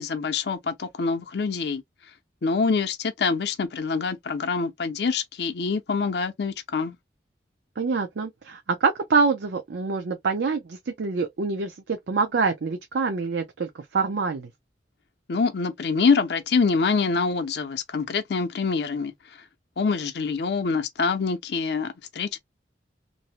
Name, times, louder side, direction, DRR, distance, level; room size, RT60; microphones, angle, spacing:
voice 1, 0.0-1.8 2.4-7.0 15.3-19.1 19.8-22.4, left 4 dB, 65° left, 0.5 m, -25 dB
voice 2, 7.8-14.5, right 4 dB, 75° right, 0.5 m, -26 dB
2.6 x 2.0 x 2.8 m
head